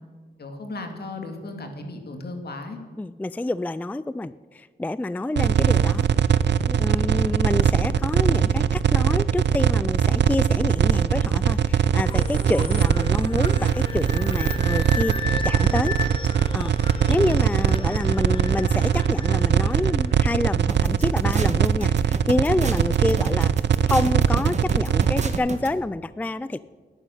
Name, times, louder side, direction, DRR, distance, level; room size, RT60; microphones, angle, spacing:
voice 1, 0.4-2.8, left 2 dB, 60° left, 5 dB, 2.3 m, -35 dB
voice 2, 2.9-6.1 6.7-15.2 15.4-16.0 16.5-23.5 23.9-26.6, left 2 dB, 10° left, 16 dB, 0.3 m, -27 dB
sound 1, 5.4-25.4, right 8 dB, 75° right, 0.6 m, -21 dB
sound 2, 12.0-20.6, left 4 dB, 30° left, 1.3 m, -35 dB
sound 3, 20.7-25.7, right 3 dB, 40° right, 1.5 m, -33 dB
11.0 x 9.8 x 9.3 m, 1.5 s
cardioid pair, 70°, 18 cm